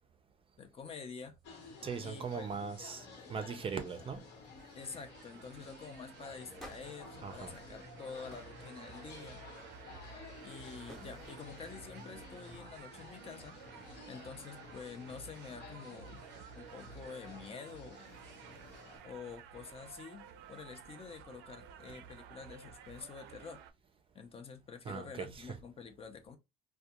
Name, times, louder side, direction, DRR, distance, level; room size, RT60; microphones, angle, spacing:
voice 1, 0.6-1.4 2.0-2.5 4.7-9.4 10.4-13.6 14.1-16.2 16.6-18.1 19.0-23.6 24.1-26.4, left 5 dB, 35° left, 0.5 m, -48 dB
sound 1, 0.8-0.9 1.3-2.1 2.4-2.7 3.1-3.5 4.1-4.2 4.6-4.8 5.2-5.4 6.6-7.9 8.3-8.6 9.0-9.5 10.0-11.7 17.7-19.0, equal, ahead, 0.8 m, -59 dB
sound 2, 1.4-19.0, left 4 dB, 75° left, 1.1 m, -53 dB
voice 2, 1.8-4.2 7.2-7.5 21.9-22.0 24.8-25.6, right 6 dB, 30° right, 0.5 m, -40 dB
sound 3, 4.6-23.7, right 7 dB, 90° right, 0.4 m, -53 dB
2.3 x 2.2 x 2.8 m
cardioid pair, 110°, 17 cm